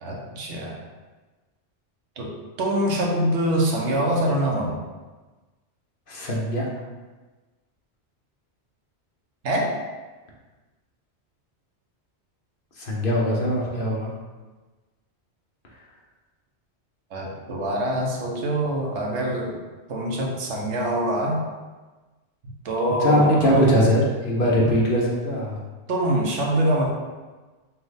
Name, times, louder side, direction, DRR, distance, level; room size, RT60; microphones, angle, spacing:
voice 1, 0.0-0.8 2.2-2.3 2.6-4.8 9.4-9.8 17.1-19.6 19.9-21.5 22.6-23.6 25.9-26.9, right 1 dB, 80° right, -1 dB, 1.1 m, -24 dB
voice 2, 6.1-6.7 12.8-14.1 23.0-25.6, equal, 50° left, -4 dB, 1.1 m, -21 dB
5.7 x 2.3 x 3.9 m, 1.3 s
omnidirectional pair, 1.2 m